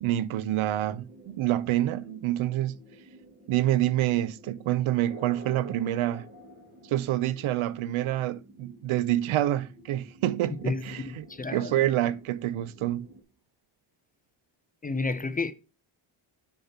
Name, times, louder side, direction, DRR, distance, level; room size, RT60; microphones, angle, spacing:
voice 1, 0.0-2.8 3.5-6.2 6.9-11.2 11.5-13.1, right 13 dB, 85° right, 0.7 m, -27 dB
sound 1, 0.7-13.2, right 1 dB, 20° right, 2.0 m, -50 dB
voice 2, 10.6-11.9 14.8-15.5, left 3 dB, 20° left, 0.4 m, -31 dB
6.6 x 4.2 x 5.6 m
cardioid pair, 135°, 47 cm